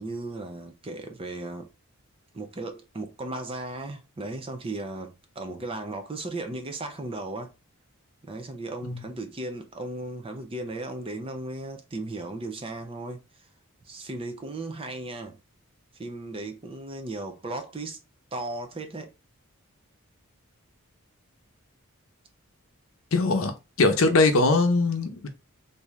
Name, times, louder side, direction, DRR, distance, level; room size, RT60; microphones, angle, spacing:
voice 1, 0.0-1.7 2.3-7.5 8.2-13.5 13.8-15.4 15.9-18.0 18.3-19.1, right 2 dB, 25° right, 0.5 m, -36 dB
voice 2, 23.1-23.5 23.8-25.3, left 3 dB, 70° left, 0.7 m, -21 dB
3.5 x 2.7 x 3.0 m
head